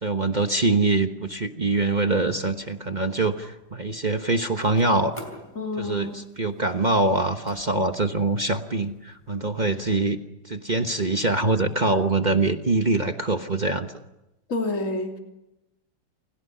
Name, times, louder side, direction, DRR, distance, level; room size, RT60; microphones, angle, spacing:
voice 1, 0.0-5.1 5.8-10.2 10.4-13.9, right 2 dB, 30° right, 7 dB, 1.0 m, -24 dB
sound 1, 1.7-10.0, left 1 dB, 15° left, 5.0 m, -49 dB
voice 2, 5.5-6.2 14.5-15.2, left 2 dB, 40° left, 2 dB, 3.3 m, -28 dB
29.5 x 28.0 x 5.6 m, 0.93 s
omnidirectional pair, 2.1 m